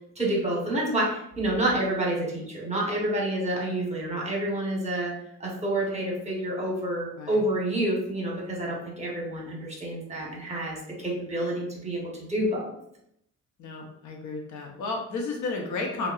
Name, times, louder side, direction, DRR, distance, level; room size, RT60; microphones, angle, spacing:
voice 1, 0.2-5.1 5.4-12.8, right 1 dB, 20° right, -3 dB, 0.9 m, -28 dB
voice 2, 13.6-16.1, left 3 dB, 70° left, 1 dB, 0.7 m, -32 dB
2.7 x 2.1 x 2.3 m, 0.73 s
cardioid pair, 90°, 30 cm